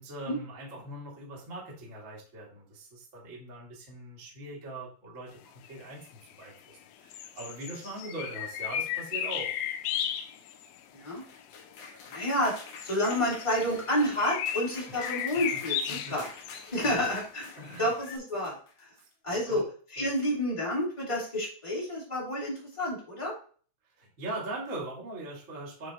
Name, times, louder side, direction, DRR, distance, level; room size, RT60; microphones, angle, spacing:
voice 1, 0.0-5.4 5.6-6.1 6.4-9.5 14.9-15.0 15.3-15.6 15.9-16.1 16.8-17.0 17.6-17.9 19.5-19.6 20.0-20.1 24.0-25.9, right 2 dB, 80° right, -5 dB, 0.6 m, -41 dB
sound 1, 5.6-5.7 6.3-6.7 7.1-10.8 11.5-11.6 12.4-18.2, left 9 dB, 90° left, 3.3 m, -35 dB
sound 2, 10.8-19.1, left 4 dB, 70° left, 2.0 m, -48 dB
voice 2, 12.1-12.5 12.8-16.3 16.6-17.5 17.8-18.9 19.2-19.6 19.9-23.3, left 1 dB, 10° left, -7 dB, 1.3 m, -30 dB
9.9 x 3.4 x 3.0 m, 0.42 s
omnidirectional pair, 5.9 m